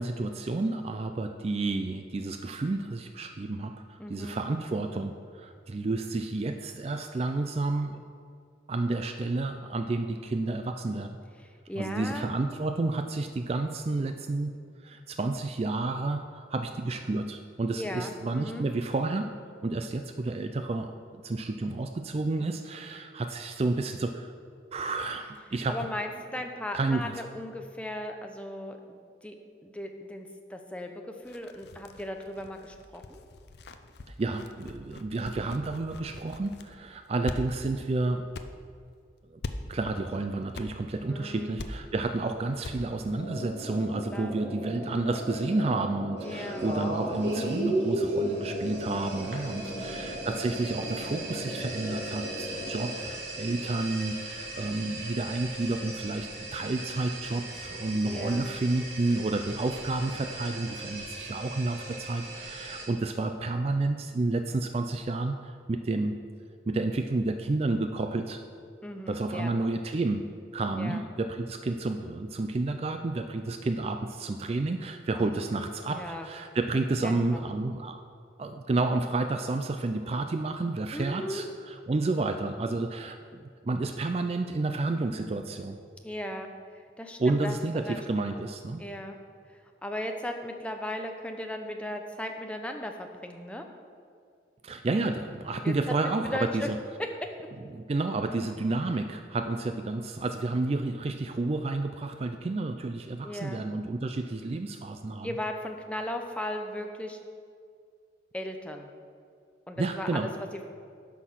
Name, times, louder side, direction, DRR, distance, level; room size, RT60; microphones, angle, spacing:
voice 1, 0.0-8.0 8.7-11.1 11.8-14.5 14.8-19.3 19.6-24.3 24.7-25.8 26.7-27.1 34.2-38.3 39.3-39.4 39.7-66.1 66.7-68.4 69.1-70.2 70.5-78.0 78.4-85.8 87.2-88.8 94.6-96.8 97.7-105.3 109.8-110.3, right 2 dB, 35° right, 7 dB, 0.3 m, -30 dB
voice 2, 4.0-4.4 5.9-6.0 11.4-12.3 17.8-18.7 25.7-29.4 29.6-33.2 41.1-41.5 44.1-44.4 46.2-46.7 49.6-50.0 58.0-58.5 68.8-69.5 70.8-71.1 75.1-75.3 75.9-76.3 77.0-77.5 80.9-81.4 86.0-88.0 88.8-89.2 89.5-93.7 95.6-95.9 96.2-96.7 97.2-97.3 103.2-103.6 105.2-107.2 108.3-108.9 109.7-110.3, left 1 dB, 5° left, 4 dB, 0.6 m, -37 dB
sound 1, 31.2-36.8 37.2-37.4 37.8-37.9 38.3-38.5 39.4-39.6 40.5-40.7 41.0-41.1 41.6-41.7 42.1-42.2 42.6-42.8 43.1-43.2, left 3 dB, 60° left, 0.5 m, -42 dB
sound 2, 43.1-52.9, equal, 35° left, 2.2 m, -38 dB
sound 3, 46.2-62.9, right 1 dB, 70° right, 2.1 m, -36 dB
9.8 x 5.9 x 6.2 m, 2.2 s
head